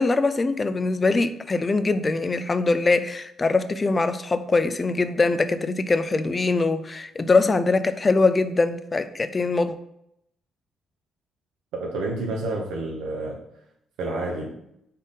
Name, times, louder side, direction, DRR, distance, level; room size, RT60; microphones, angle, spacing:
voice 1, 0.0-9.7, left 3 dB, 30° left, 12 dB, 0.3 m, -22 dB
voice 2, 11.7-13.4 14.0-14.6, right 2 dB, 90° right, -1 dB, 0.7 m, -29 dB
4.0 x 3.6 x 3.6 m, 0.78 s
cardioid pair, 90°, 0 cm